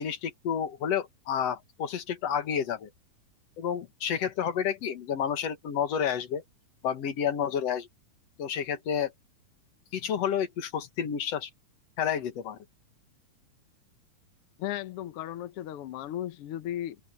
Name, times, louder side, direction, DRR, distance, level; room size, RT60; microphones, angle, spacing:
voice 1, 0.0-2.9 3.6-6.4 6.8-7.9 8.4-9.1 9.9-11.5 12.0-12.6, left 8 dB, 55° left, 2.4 m, -30 dB
voice 2, 14.6-17.0, left 12 dB, 85° left, 1.3 m, -35 dB
open air
omnidirectional pair, 3.9 m